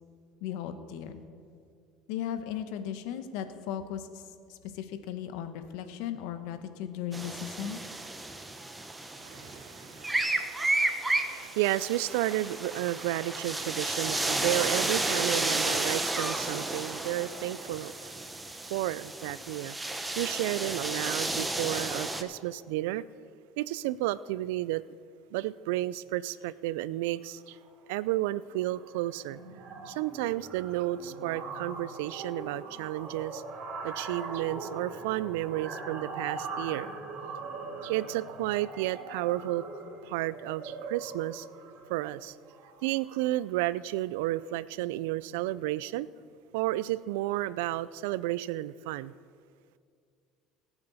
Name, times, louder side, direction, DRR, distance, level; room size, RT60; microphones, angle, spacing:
voice 1, 0.4-1.2 2.1-4.2 4.5-7.8, left 9 dB, 80° left, 9 dB, 1.1 m, -36 dB
sound 1, 7.1-22.2, right 2 dB, 10° right, 1.0 m, -32 dB
voice 2, 9.2-18.2 18.7-19.8 20.2-23.0 23.6-24.8 25.3-27.6 27.9-29.4 29.9-33.4 33.8-36.9 37.8-39.7 40.0-41.5 41.9-42.4 42.8-46.1 46.5-49.1, right 16 dB, 85° right, 19 dB, 0.3 m, -32 dB
sound 2, 27.4-27.7 28.0-28.2 28.5-43.4, right 3 dB, 60° right, 3.0 m, -41 dB
20.5 x 8.8 x 4.1 m, 2.2 s
supercardioid pair, 105°, 0 cm